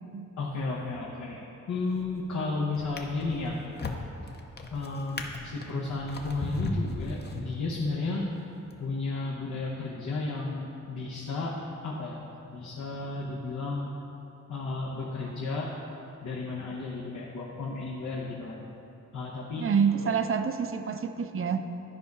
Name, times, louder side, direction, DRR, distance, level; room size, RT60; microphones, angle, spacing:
voice 1, 0.4-1.4 1.7-3.6 4.7-8.2 8.8-11.5 11.8-12.2 12.5-13.9 14.5-15.7 16.2-18.7 19.1-19.7 20.0-20.1, left 3 dB, 75° left, -4 dB, 1.0 m, -33 dB
Drawer open or close, 1.8-2.2 2.8-7.9 8.6-8.8, left 2 dB, 35° left, 0.7 m, -37 dB
voice 2, 19.6-21.7, right 6 dB, 45° right, 8 dB, 0.5 m, -27 dB
11.0 x 5.3 x 4.8 m, 2.9 s
wide cardioid pair, 115°, 30 cm